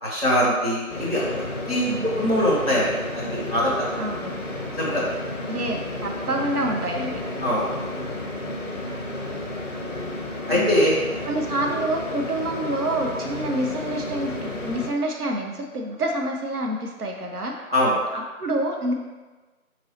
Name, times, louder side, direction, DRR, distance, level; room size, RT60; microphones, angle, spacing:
voice 1, 0.0-3.9 4.8-5.1 7.4-7.7 10.5-11.0 17.7-18.0, equal, 45° right, -7 dB, 1.0 m, -23 dB
sound 1, 0.9-14.9, left 1 dB, 60° left, 0.5 m, -32 dB
voice 2, 1.9-2.3 4.0-4.3 5.5-7.2 10.5-10.8 11.2-17.5 18.1-18.9, right 1 dB, 85° right, 2 dB, 0.7 m, -27 dB
3.9 x 3.0 x 2.8 m, 1.3 s
figure-of-eight pair, 175°, 44 cm